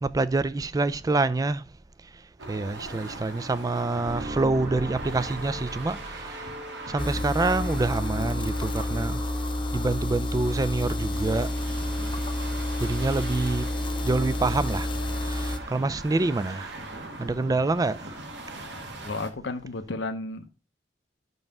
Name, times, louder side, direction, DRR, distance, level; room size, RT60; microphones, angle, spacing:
voice 1, 0.0-1.6 2.5-6.5 6.9-9.2 9.7-11.5 12.8-13.7 14.0-14.9 15.2-16.7 17.2-18.2, right 3 dB, 20° right, 0.3 m, -26 dB
sound 1, 2.4-19.3, right 2 dB, 65° right, 1.5 m, -41 dB
sound 2, 4.0-19.1, right 1 dB, 45° right, 1.6 m, -43 dB
sound 3, 7.0-15.6, left 1 dB, 25° left, 0.7 m, -29 dB
voice 2, 19.0-20.5, left 3 dB, 70° left, 0.8 m, -33 dB
6.0 x 5.4 x 5.4 m
head